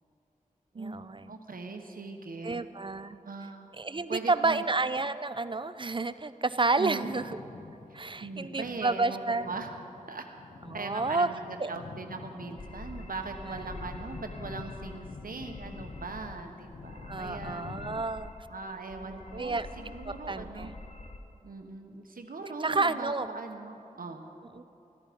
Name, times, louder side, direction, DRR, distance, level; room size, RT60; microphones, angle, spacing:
voice 1, 0.8-1.3 2.4-3.2 3.8-7.4 7.9-9.5 10.7-11.3 11.6-11.7 13.5-13.6 17.1-18.3 19.0-20.8 22.6-23.3 24.5-24.6, right 3 dB, 35° right, 13 dB, 0.5 m, -30 dB
voice 2, 1.3-2.6 3.2-3.7 4.1-4.7 6.8-7.1 8.2-9.7 10.1-10.3 10.7-17.6 18.5-20.7 21.4-24.2, right 3 dB, 85° right, 4 dB, 1.1 m, -40 dB
sound 1, 7.0-18.0, left 4 dB, 70° left, 0.7 m, -47 dB
Alien Signal, 12.6-16.4 16.7-18.6 18.9-21.2, left 2 dB, 50° left, 1.1 m, -46 dB
14.5 x 13.0 x 5.1 m, 2.9 s
wide cardioid pair, 65°, 14 cm